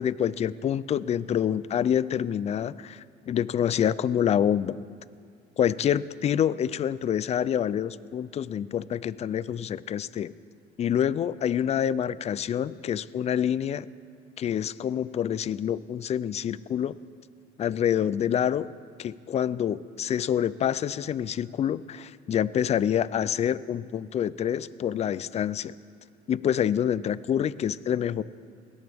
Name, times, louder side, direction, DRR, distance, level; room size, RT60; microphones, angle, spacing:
voice 1, 0.0-4.8 5.6-10.3 10.8-13.9 14.4-17.0 17.6-18.7 19.0-25.7 26.3-28.2, left 9 dB, 40° left, 18 dB, 0.4 m, -27 dB
20.5 x 17.0 x 3.5 m, 2.2 s
cardioid pair, 110°, 17 cm